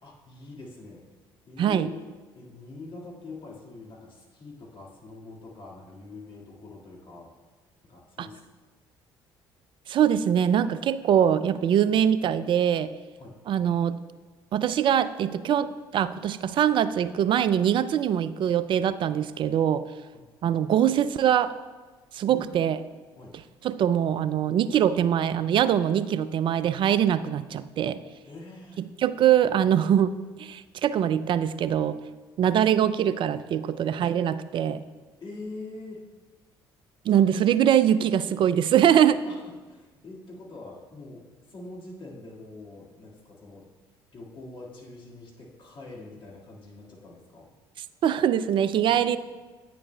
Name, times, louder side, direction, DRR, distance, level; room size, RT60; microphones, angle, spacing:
voice 1, 0.0-1.0 1.5-2.0 2.3-7.3 7.8-8.4 13.2-13.3 20.1-20.2 22.3-22.8 23.2-23.4 28.2-28.8 35.2-36.0 37.1-37.2 39.3-43.7 44.1-47.5 48.9-49.2, left 3 dB, 45° left, -4 dB, 1.8 m, -44 dB
voice 2, 1.6-1.9 8.2-8.3 9.9-12.9 13.5-14.0 14.5-19.8 20.4-21.5 22.1-22.8 23.6-28.0 29.0-30.1 30.4-32.0 32.4-34.8 37.1-39.2 48.0-49.2, right 9 dB, 45° right, 14 dB, 0.3 m, -23 dB
8.9 x 6.2 x 2.2 m, 1.3 s
hypercardioid pair, 55°, 12 cm